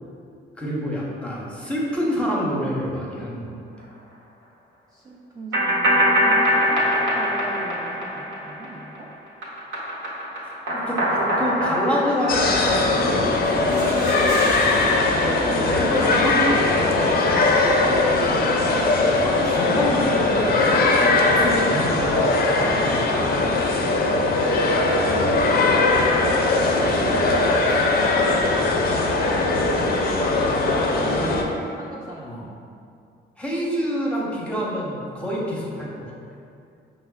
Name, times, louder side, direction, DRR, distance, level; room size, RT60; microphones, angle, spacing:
voice 1, 0.6-3.6 10.4-13.3 15.3-17.7 19.1-23.6 31.0-31.5 32.2-32.4 33.4-36.2, equal, 5° left, -5 dB, 0.7 m, -28 dB
voice 2, 4.9-9.1 18.3-19.2 25.0-28.7 29.3-29.9 30.7-32.5, right 2 dB, 20° right, -4 dB, 0.3 m, -39 dB
sound 1, 5.5-9.0 9.3-13.2, equal, 85° right, 0.8 m, -23 dB
sound 2, 12.3-31.4, left 2 dB, 50° left, 0.4 m, -20 dB
sound 3, 13.4-16.5, right 1 dB, 55° right, 0.6 m, -36 dB
5.3 x 2.0 x 2.3 m, 2.4 s
cardioid pair, 90°, 20 cm